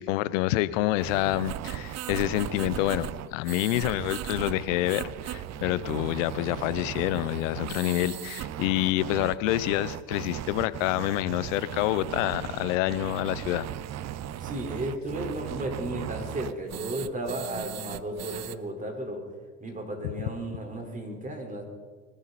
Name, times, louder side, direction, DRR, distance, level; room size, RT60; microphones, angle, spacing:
voice 1, 0.0-13.7, left 16 dB, 75° left, 17 dB, 0.9 m, -27 dB
sound 1, 1.0-18.6, right 11 dB, 45° right, 0.8 m, -37 dB
voice 2, 14.4-19.2 19.6-21.6, right 1 dB, 20° right, 2 dB, 4.4 m, -34 dB
23.0 x 14.0 x 4.2 m, 1.5 s
hypercardioid pair, 80°, 38 cm